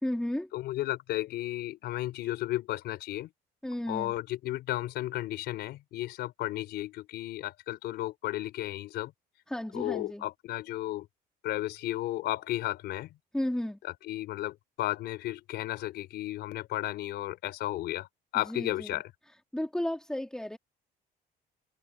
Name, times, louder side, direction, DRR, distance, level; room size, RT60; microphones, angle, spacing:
voice 1, 0.0-0.5 3.6-4.1 9.5-10.3 13.3-13.8 18.5-18.9 19.5-20.6, left 1 dB, 5° left, 1.9 m, -33 dB
voice 2, 0.5-3.3 3.9-9.1 9.7-11.1 11.4-13.1 14.0-18.1 18.3-19.1, left 15 dB, 80° left, 3.8 m, -34 dB
cardioid pair, 110°, 17 cm